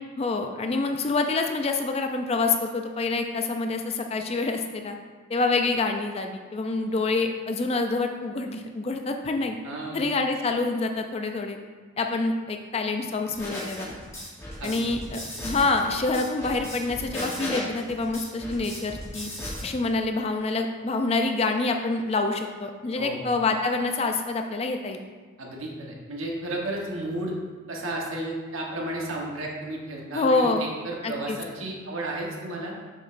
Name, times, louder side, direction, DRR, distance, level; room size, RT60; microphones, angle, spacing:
voice 1, 0.2-5.0 5.3-9.6 9.9-11.6 12.0-13.9 14.6-19.3 19.6-25.0 30.1-30.6 31.0-31.4, left 3 dB, 30° left, 5 dB, 0.3 m, -26 dB
voice 2, 9.6-10.0 14.6-14.9 23.0-23.2 25.4-27.4 27.7-32.7, right 1 dB, 70° right, -2 dB, 1.1 m, -33 dB
sound 1, 13.3-19.7, left 1 dB, 15° left, 0.9 m, -36 dB
6.2 x 6.1 x 2.5 m, 1.5 s
head